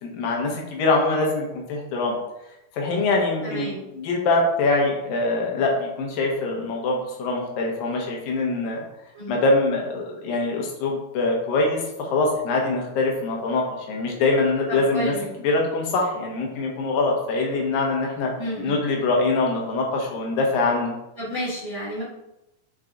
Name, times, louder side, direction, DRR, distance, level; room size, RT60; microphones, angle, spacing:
voice 1, 0.0-2.2 2.7-8.8 9.3-15.1 15.4-18.3 18.6-20.9, left 3 dB, 80° left, 0 dB, 2.8 m, -23 dB
voice 2, 3.4-3.8 9.1-9.4 14.7-15.3 18.4-18.8 21.2-22.0, equal, 15° right, -7 dB, 1.1 m, -31 dB
6.3 x 4.0 x 3.7 m, 0.88 s
omnidirectional pair, 3.9 m